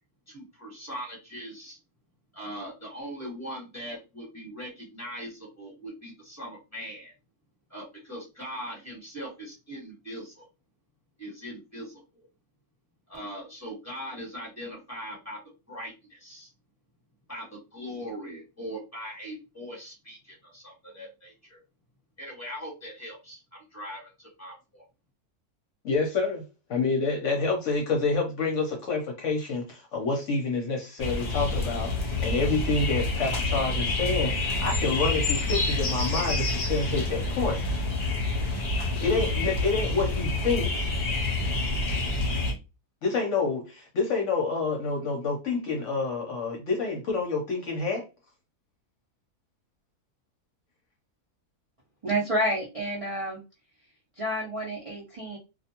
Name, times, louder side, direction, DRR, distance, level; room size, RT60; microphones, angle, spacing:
voice 1, 0.3-1.8 2.3-7.1 7.7-10.4 11.2-12.3 13.1-15.4 15.7-16.5 17.3-21.6 22.2-24.8, equal, 10° left, 1.1 m, -40 dB
voice 2, 25.8-26.4 26.7-37.6 39.0-40.9 43.0-48.0, left 4 dB, 60° left, 0.9 m, -28 dB
sound 1, 31.0-42.5, left 2 dB, 85° left, 0.3 m, -28 dB
voice 3, 52.0-53.4 54.2-55.4, right 1 dB, 65° right, 0.3 m, -29 dB
2.4 x 2.2 x 2.8 m
omnidirectional pair, 1.6 m